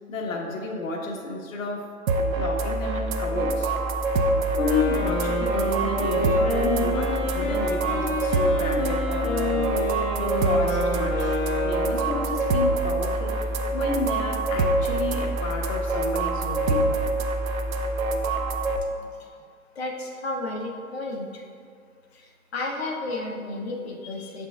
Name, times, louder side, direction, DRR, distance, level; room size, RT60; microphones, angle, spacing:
voice 1, 0.1-1.9 2.4-3.7 4.6-9.9 10.2-17.0, left 3 dB, 65° left, 0 dB, 1.1 m, -32 dB
sound 1, 2.1-18.8, right 2 dB, 70° right, 0.7 m, -25 dB
Wind instrument woodwind instrument, 4.5-12.4, left 1 dB, 30° left, 1.4 m, -28 dB
voice 2, 19.8-21.4 22.1-24.5, left 2 dB, 45° left, 0 dB, 0.8 m, -32 dB
7.4 x 5.8 x 2.3 m, 2.2 s
hypercardioid pair, 175°, 43 cm